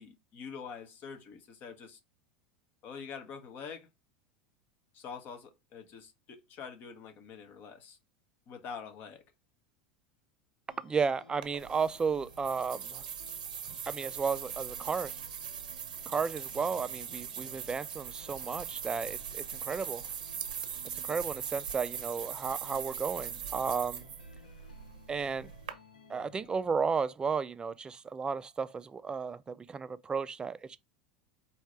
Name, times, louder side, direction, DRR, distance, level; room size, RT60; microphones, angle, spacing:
voice 1, 0.0-2.0 2.8-3.9 4.9-8.0 8.5-9.2, left 6 dB, 45° left, 1.1 m, -45 dB
sound 1, 10.7-26.7, left 4 dB, 85° left, 0.7 m, -59 dB
voice 2, 10.8-13.0 13.9-15.1 16.1-20.0 20.9-24.1 25.1-25.5 26.1-30.8, right 5 dB, 20° right, 0.4 m, -33 dB
sound 2, 11.4-25.7, right 8 dB, 85° right, 0.7 m, -41 dB
4.4 x 2.8 x 3.2 m
hypercardioid pair, 90°, 4 cm